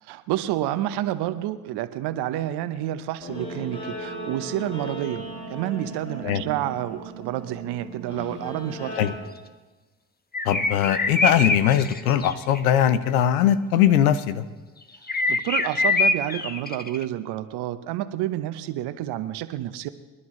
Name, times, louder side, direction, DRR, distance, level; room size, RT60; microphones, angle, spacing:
voice 1, 0.0-5.2 5.5-9.0 15.3-19.9, right 13 dB, 65° right, 12 dB, 1.0 m, -29 dB
Guitar, 3.2-9.2, right 1 dB, 40° left, 6.1 m, -36 dB
sound 1, 10.3-12.6 15.1-17.0, left 3 dB, 20° left, 1.2 m, -24 dB
voice 2, 10.4-14.4, left 10 dB, 85° left, 13 dB, 0.8 m, -20 dB
27.5 x 11.0 x 3.2 m, 1.3 s
hypercardioid pair, 50°, 42 cm